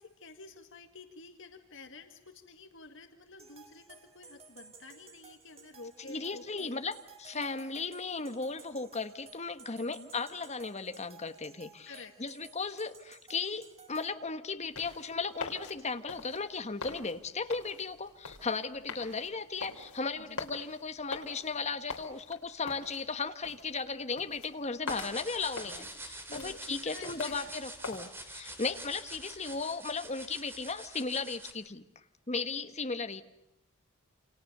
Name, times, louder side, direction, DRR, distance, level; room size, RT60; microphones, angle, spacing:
voice 1, 0.0-6.8 9.8-10.1 11.9-12.3 20.2-20.5 26.3-27.3, left 3 dB, 55° left, 5 dB, 2.0 m, -50 dB
sound 1, 3.4-14.1, right 5 dB, 25° right, 2.3 m, -56 dB
voice 2, 6.1-6.9 7.2-11.9 12.2-31.8 32.3-33.2, left 4 dB, 30° left, 8 dB, 1.3 m, -36 dB
sound 2, 14.6-28.0, left 4 dB, 75° left, 4.2 m, -45 dB
sound 3, 24.9-31.5, right 1 dB, 10° right, 3.0 m, -46 dB
29.0 x 27.5 x 6.8 m, 0.87 s
head